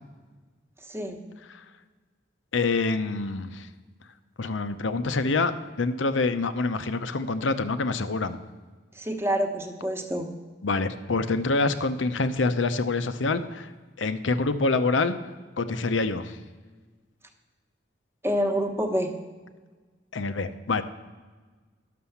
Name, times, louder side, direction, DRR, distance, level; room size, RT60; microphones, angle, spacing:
voice 1, 0.9-1.2 8.9-10.3 18.2-19.1, equal, 15° right, 4 dB, 1.1 m, -27 dB
voice 2, 2.5-3.7 4.4-5.5 5.8-8.4 10.6-13.7 14.0-15.2 15.6-16.4 20.1-20.8, left 3 dB, 80° left, 11 dB, 0.7 m, -26 dB
11.5 x 6.8 x 7.1 m, 1.4 s
head